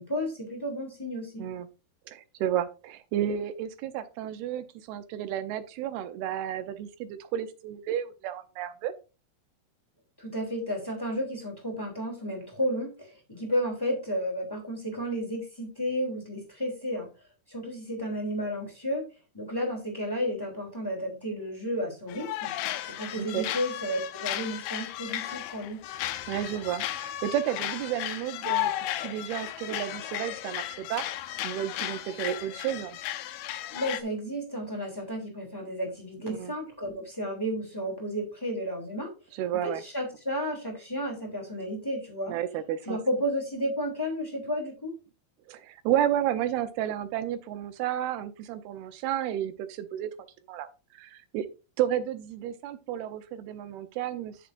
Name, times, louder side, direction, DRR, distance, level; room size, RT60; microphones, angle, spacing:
voice 1, 0.0-1.4 10.2-17.1 17.5-19.0 19.3-22.5 22.9-25.8 33.7-39.1 39.6-42.4 42.9-44.9, equal, 5° left, 0 dB, 2.5 m, -32 dB
voice 2, 2.1-8.9 23.2-23.4 26.3-28.7 29.0-31.0 31.4-33.0 36.3-36.5 39.4-39.8 42.3-43.0 45.5-50.1 50.5-50.7 50.9-51.5 51.8-54.4, right 11 dB, 85° right, 10 dB, 2.8 m, -32 dB
sound 1, 22.1-34.0, left 13 dB, 80° left, 2.5 m, -34 dB
11.0 x 7.0 x 2.6 m, 0.31 s
omnidirectional pair, 4.4 m